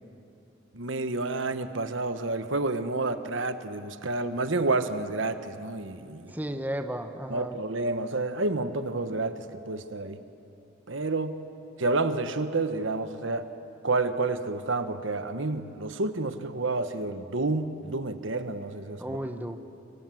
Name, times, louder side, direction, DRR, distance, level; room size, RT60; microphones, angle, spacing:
voice 1, 0.7-6.3 7.3-10.2 10.9-11.4 11.8-13.5 13.8-19.2, right 3 dB, 70° right, 10 dB, 1.3 m, -29 dB
voice 2, 6.3-7.6 19.0-19.6, right 1 dB, 10° right, 7 dB, 1.1 m, -33 dB
29.5 x 25.5 x 7.8 m, 2.8 s
head